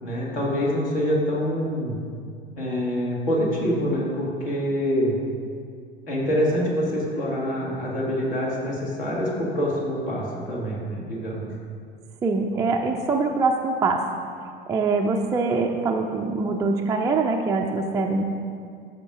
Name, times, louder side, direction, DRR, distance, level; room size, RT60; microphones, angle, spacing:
voice 1, 0.0-1.9 2.6-5.1 6.1-11.5, equal, 65° left, -4 dB, 2.1 m, -25 dB
voice 2, 12.2-14.0 14.7-18.2, right 3 dB, 10° right, 1 dB, 0.3 m, -23 dB
13.0 x 6.6 x 2.5 m, 2.2 s
figure-of-eight pair, 75°, 31 cm